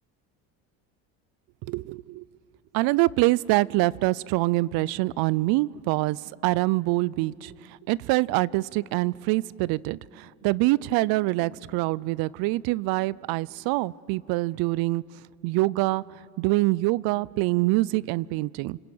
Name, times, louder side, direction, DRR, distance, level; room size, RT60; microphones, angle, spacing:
voice 1, 1.7-2.2 2.7-15.0 15.4-16.0 16.4-18.8, right 20 dB, 65° right, 23 dB, 0.5 m, -25 dB
28.0 x 20.5 x 8.8 m, 2.4 s
supercardioid pair, 95°, 38 cm